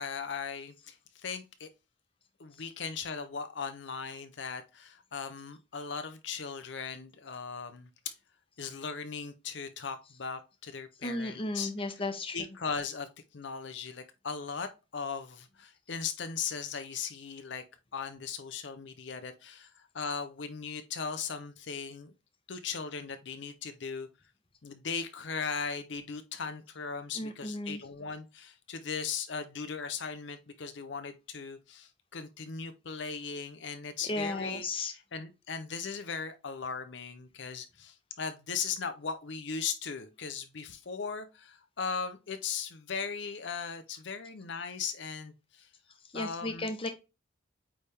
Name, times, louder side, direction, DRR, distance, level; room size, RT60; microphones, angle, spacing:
voice 1, 0.0-1.7 2.4-7.9 8.6-11.7 12.3-13.1 13.3-17.6 17.9-22.1 22.5-24.1 24.6-45.7 46.1-46.7, left 5 dB, 65° left, 0.6 m, -38 dB
voice 2, 11.0-12.4 27.1-27.8 34.0-34.9 46.1-46.9, left 2 dB, 30° left, 0.9 m, -34 dB
8.6 x 3.5 x 3.4 m
head